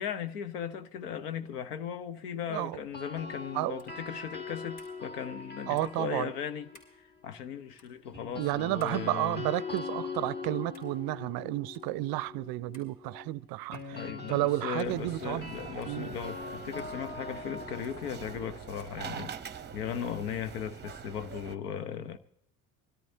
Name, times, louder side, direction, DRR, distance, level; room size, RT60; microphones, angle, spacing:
voice 1, 0.0-6.8 7.2-9.4 13.9-22.2, left 8 dB, 85° left, 0.9 m, -37 dB
sound 1, 2.7-6.9 8.1-20.0, left 4 dB, 20° left, 1.8 m, -43 dB
sound 2, 3.8-4.0 4.8-5.0 5.8-6.0 6.7-7.0 7.7-7.9 8.8-9.0 9.8-10.0 10.7-10.9 11.7-11.9 12.7-12.9 13.7-13.9 14.8-15.0 15.8-16.0 16.8-17.0 17.8-18.0 18.8-19.0, left 2 dB, 70° left, 6.4 m, -58 dB
voice 2, 5.7-6.3 8.4-15.5 15.9-16.1, right 19 dB, 55° right, 0.5 m, -32 dB
sound 3, 14.8-21.6, right 7 dB, 25° right, 0.8 m, -44 dB
24.0 x 13.5 x 2.7 m
hypercardioid pair, 65°, 45 cm